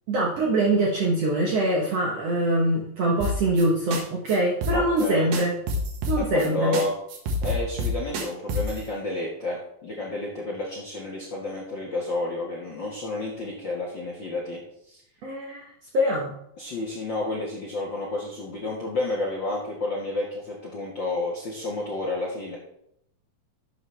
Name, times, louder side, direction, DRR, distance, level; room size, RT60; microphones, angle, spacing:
voice 1, 0.1-5.6 6.1-6.8 15.2-15.7 15.9-16.3, right 1 dB, 60° right, -1 dB, 1.7 m, -23 dB
sound 1, 3.2-3.7 3.9-4.0 4.3-4.4 4.6-5.1 5.3-6.5 6.7-6.8 7.1-8.8, left 1 dB, 80° right, 3.3 m, -28 dB
voice 2, 4.7-5.3 6.2-6.9 7.4-14.6 14.9-15.0 16.6-22.6, left 2 dB, 50° left, -3 dB, 1.4 m, -30 dB
11.5 x 7.9 x 3.3 m, 0.75 s
omnidirectional pair, 4.3 m